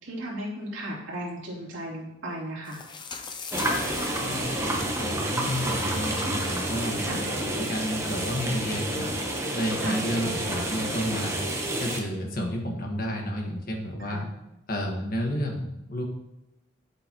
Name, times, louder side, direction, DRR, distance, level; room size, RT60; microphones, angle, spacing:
voice 1, 0.0-2.8 7.0-7.2 9.8-10.0 14.0-14.2, right 1 dB, 75° right, -6 dB, 3.3 m, -35 dB
sound 1, 2.7-12.0, left 5 dB, 25° left, 0.6 m, -44 dB
sound 2, 3.5-12.0, right 1 dB, 15° right, 1.0 m, -29 dB
voice 2, 4.2-9.1 9.5-11.4 11.8-14.3 14.7-16.0, equal, 45° left, 0 dB, 1.6 m, -31 dB
9.0 x 8.3 x 3.1 m, 0.92 s
head